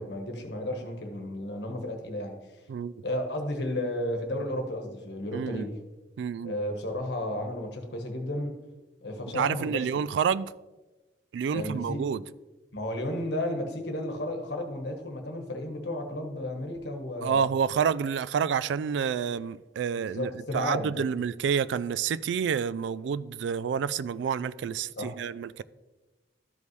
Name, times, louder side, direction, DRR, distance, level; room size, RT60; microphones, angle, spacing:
voice 1, 0.0-2.4 3.0-5.7 6.4-8.6 9.0-10.0 11.5-12.0 12.7-17.4 20.0-21.1 25.0-25.1, left 1 dB, 70° left, 1.2 m, -33 dB
voice 2, 5.3-5.7 6.2-6.5 9.3-10.5 11.3-12.2 17.2-25.6, right 7 dB, 80° right, 0.3 m, -29 dB
13.0 x 5.3 x 3.1 m
head